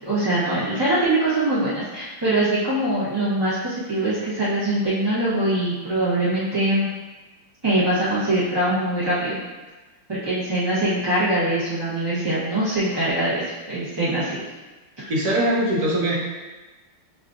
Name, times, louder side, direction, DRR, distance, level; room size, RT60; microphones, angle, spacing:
voice 1, 0.0-6.9 7.6-9.4 10.1-14.4 15.0-15.1, right 1 dB, 25° right, -11 dB, 0.6 m, -23 dB
voice 2, 15.1-16.1, right 1 dB, 55° right, -5 dB, 1.3 m, -21 dB
6.4 x 2.5 x 2.5 m, 1.2 s
omnidirectional pair, 2.2 m